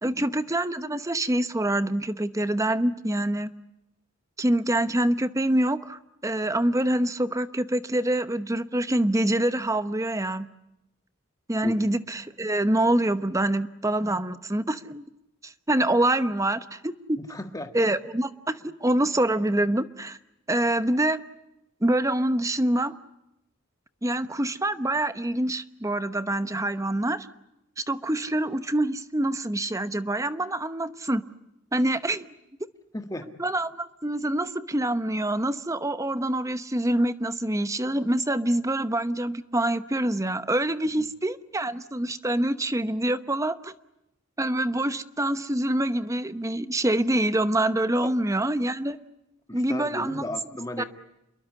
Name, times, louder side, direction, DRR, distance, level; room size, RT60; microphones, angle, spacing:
voice 1, 0.0-3.5 4.4-10.5 11.5-15.0 15.4-16.9 17.7-20.2 20.5-21.2 21.8-23.0 24.0-27.3 27.8-31.2 31.7-32.3 33.4-43.7 44.4-49.0 49.5-50.2 50.8-50.9, right 1 dB, 15° right, 12 dB, 0.9 m, -26 dB
voice 2, 17.2-17.7 32.9-33.3 41.0-41.1 49.5-50.8, left 1 dB, 15° left, 6 dB, 1.6 m, -35 dB
28.0 x 22.5 x 8.3 m, 0.87 s
head